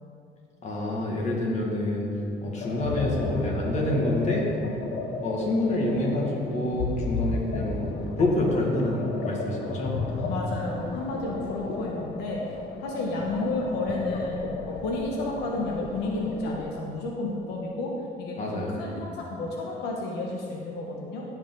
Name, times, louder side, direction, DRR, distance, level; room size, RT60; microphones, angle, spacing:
voice 1, 0.6-2.1 2.4-4.8 5.2-7.9 8.2-9.9 18.4-19.0, left 1 dB, 45° left, -2 dB, 2.0 m, -27 dB
sound 1, 2.6-16.6, left 3 dB, 65° left, 0.9 m, -34 dB
voice 2, 10.3-12.4 12.8-17.9 18.2-18.4 18.7-21.2, left 2 dB, 90° left, -1 dB, 1.2 m, -31 dB
15.0 x 5.2 x 3.9 m, 2.4 s
cardioid pair, 110°, 17 cm